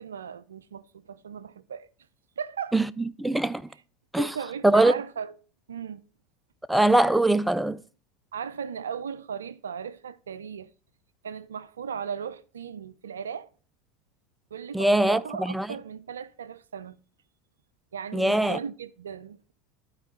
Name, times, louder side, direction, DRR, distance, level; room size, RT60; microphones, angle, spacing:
voice 1, 0.0-1.9 2.4-2.8 4.2-5.3 5.7-6.0 8.3-10.7 11.2-13.5 14.5-17.0 17.9-19.5, right 7 dB, 80° right, 0.4 m, -37 dB
voice 2, 3.2-3.6 4.1-4.3 4.6-4.9 6.7-7.8 14.7-15.7 18.1-18.6, right 2 dB, 5° right, 0.4 m, -21 dB
12.0 x 4.6 x 4.1 m
hypercardioid pair, 80°, 0 cm